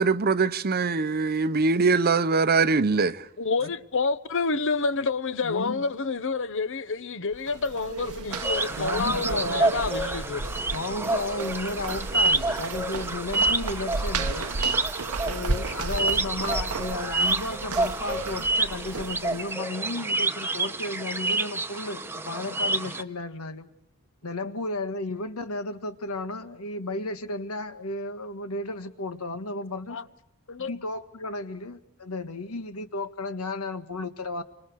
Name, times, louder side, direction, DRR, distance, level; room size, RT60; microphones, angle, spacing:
voice 1, 0.0-3.3, right 4 dB, 45° right, 0.8 m, -22 dB
voice 2, 3.4-10.6 29.9-30.0 30.5-30.7, left 4 dB, 60° left, 0.9 m, -28 dB
voice 3, 5.4-5.8 8.8-9.8 10.7-14.6 15.2-23.7 24.2-30.0 30.6-34.4, left 2 dB, 80° left, 1.5 m, -33 dB
sound 1, 7.3-19.5, right 3 dB, 85° right, 0.9 m, -34 dB
sound 2, 8.3-23.0, right 2 dB, 10° right, 0.9 m, -28 dB
29.0 x 25.0 x 4.7 m
head